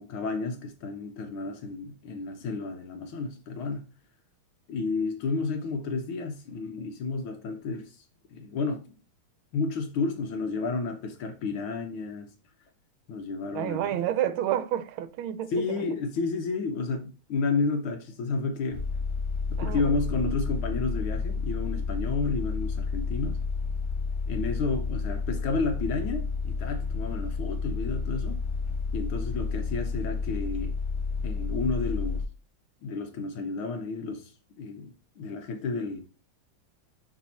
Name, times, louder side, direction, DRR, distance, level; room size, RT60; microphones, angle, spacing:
voice 1, 0.0-3.9 4.7-8.0 8.3-8.8 9.5-12.3 13.1-14.0 15.5-18.8 19.5-23.4 24.3-28.4 28.9-30.8 31.2-32.2 32.8-34.3 34.6-36.0, left 4 dB, 75° left, 1.7 m, -31 dB
voice 2, 13.5-16.0 19.6-19.9, right 11 dB, 80° right, 1.4 m, -30 dB
sound 1, 18.7-32.2, left 4 dB, 15° left, 2.2 m, -31 dB
7.0 x 4.0 x 4.1 m
omnidirectional pair, 2.3 m